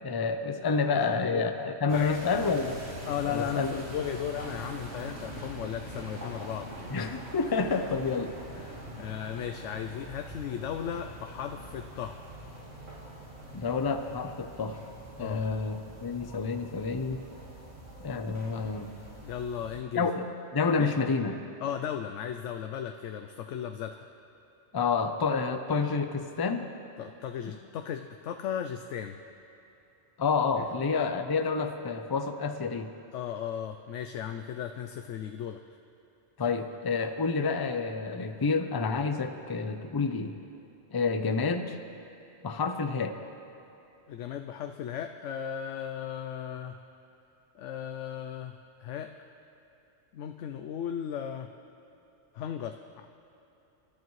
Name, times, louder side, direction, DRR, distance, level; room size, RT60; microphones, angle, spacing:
voice 1, 0.0-2.8 3.2-3.8 6.9-8.3 13.5-14.8 15.2-17.2 18.0-18.9 19.9-20.2 20.5-21.4 24.7-26.7 30.2-32.9 36.4-40.3 40.9-41.8 42.4-43.2, left 4 dB, 25° left, 7 dB, 0.5 m, -29 dB
voice 2, 0.9-1.4 1.9-2.2 3.1-6.7 8.6-12.2 15.2-15.4 19.1-20.1 20.8-20.9 21.6-24.1 27.0-29.2 30.6-30.7 33.1-35.6 44.1-46.8 47.5-48.5 48.8-49.1 50.1-51.5 52.3-53.1, left 9 dB, 80° left, 6 dB, 0.9 m, -36 dB
sound 1, 1.9-19.8, right 1 dB, 60° right, 3.1 m, -44 dB
27.0 x 12.0 x 3.2 m, 2.9 s
omnidirectional pair, 1.2 m